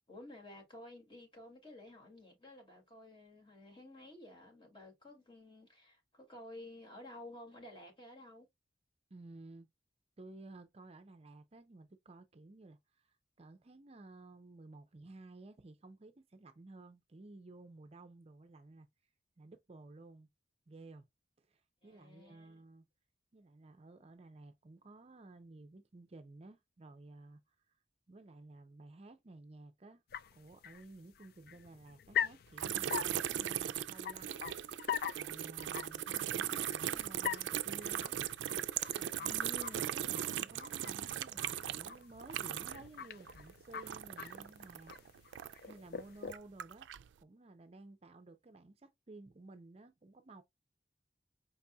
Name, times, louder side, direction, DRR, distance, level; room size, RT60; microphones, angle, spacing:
voice 1, 0.1-8.5 21.8-22.6 39.2-40.0, left 1 dB, 30° left, 2.1 m, -53 dB
voice 2, 9.1-9.7 10.2-18.9 19.4-20.3 20.7-21.1 21.5-22.8 23.3-27.4 28.1-30.0 30.3-38.3 38.9-39.3 39.8-46.9 47.2-50.4, right 2 dB, 35° right, 0.5 m, -55 dB
sound 1, 30.1-45.0 45.2-46.4, left 8 dB, 55° left, 0.4 m, -43 dB
sound 2, 32.6-43.0 43.2-45.7 46.2-47.1, right 10 dB, 90° right, 0.4 m, -38 dB
5.3 x 4.1 x 2.2 m
head